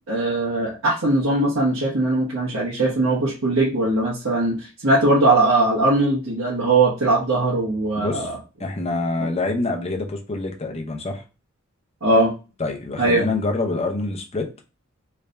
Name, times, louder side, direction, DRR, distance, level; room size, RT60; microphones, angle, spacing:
voice 1, 0.1-8.4 12.0-12.3 13.0-13.2, right 2 dB, 85° right, 1.2 m, -20 dB
voice 2, 8.0-8.3 8.6-11.2 12.6-14.5, left 2 dB, 30° left, 0.7 m, -26 dB
3.3 x 2.6 x 3.3 m
head